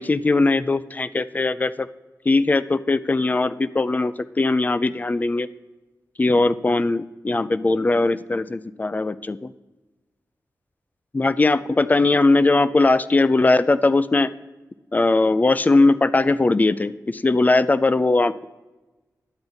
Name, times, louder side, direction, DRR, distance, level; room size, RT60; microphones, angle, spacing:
voice 1, 0.0-1.9 2.3-5.5 6.2-9.5 11.1-14.3 14.9-18.4, left 3 dB, 25° left, 15 dB, 0.4 m, -20 dB
10.5 x 8.3 x 4.0 m, 1.2 s
wide cardioid pair, 85°, 7 cm